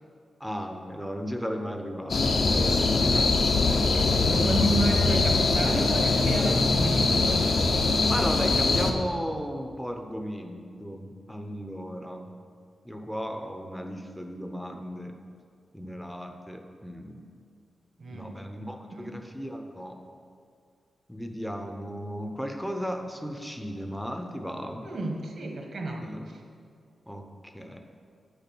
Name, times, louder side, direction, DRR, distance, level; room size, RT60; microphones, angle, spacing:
voice 1, 0.4-3.4 3.7-4.0 8.1-12.3 12.8-15.1 15.7-17.2 18.1-20.0 21.1-24.9 26.0-26.2 27.1-27.8, equal, ahead, 4 dB, 0.7 m, -35 dB
sound 1, 2.1-8.9, left 3 dB, 50° left, 0.8 m, -22 dB
voice 2, 3.7-7.5 18.0-18.3 18.9-19.2 24.8-26.4, right 2 dB, 55° right, 2 dB, 1.4 m, -32 dB
8.7 x 6.9 x 6.1 m, 2.2 s
wide cardioid pair, 150°, 0 cm